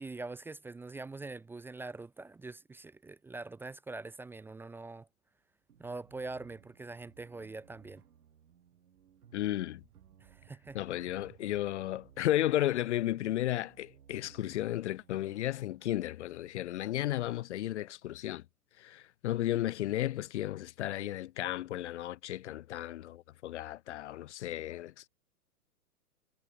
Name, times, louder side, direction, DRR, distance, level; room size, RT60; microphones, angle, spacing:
voice 1, 0.0-5.1 5.8-8.0 10.2-10.8, right 3 dB, 5° right, 0.9 m, -43 dB
sound 1, 5.7-18.5, right 8 dB, 75° right, 7.9 m, -63 dB
sound 2, 8.1-16.2, right 40 dB or more, 35° right, 4.4 m, -65 dB
voice 2, 9.3-9.8 10.7-18.4 18.8-25.1, left 14 dB, 50° left, 0.9 m, -34 dB
hypercardioid pair, 140°, 46 cm